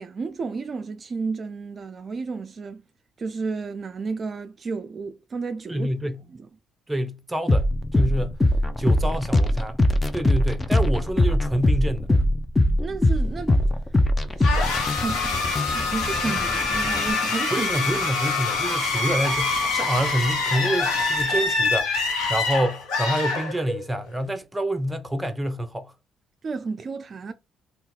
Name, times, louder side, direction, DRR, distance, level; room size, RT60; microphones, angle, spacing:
voice 1, 0.0-2.8 3.2-5.9 6.3-6.5 12.8-13.6 14.4-14.5 14.9-17.7 26.4-27.3, right 4 dB, 45° right, 0.3 m, -32 dB
voice 2, 5.7-6.2 6.9-8.4 8.8-9.8 10.1-12.1 17.5-21.9 22.3-25.9, right 1 dB, 15° right, 0.7 m, -27 dB
sound 1, 7.5-17.1, left 1 dB, 25° left, 0.6 m, -22 dB
sound 2, 14.4-24.0, left 3 dB, 75° left, 1.0 m, -25 dB
2.7 x 2.3 x 3.6 m
hypercardioid pair, 50°, 0 cm